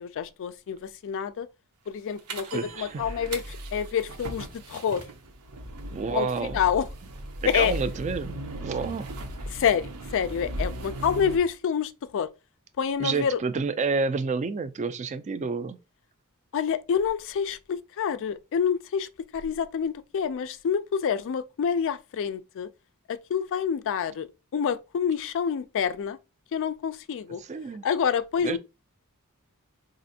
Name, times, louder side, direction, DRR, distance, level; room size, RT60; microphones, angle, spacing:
voice 1, 0.0-1.5 1.9-5.1 6.1-6.3 6.5-6.9 7.4-7.7 9.5-12.3 12.8-13.4 16.5-19.1 19.3-22.7 23.1-24.3 24.5-26.2 26.5-27.4 27.8-28.6, left 7 dB, 60° left, 0.3 m, -27 dB
sound 1, 2.3-11.4, right 1 dB, 85° right, 0.7 m, -37 dB
voice 2, 2.5-3.0 5.9-6.6 7.5-9.2 13.0-15.8 27.4-27.8 28.4-28.6, right 4 dB, 30° right, 0.3 m, -29 dB
4.1 x 2.5 x 2.7 m
head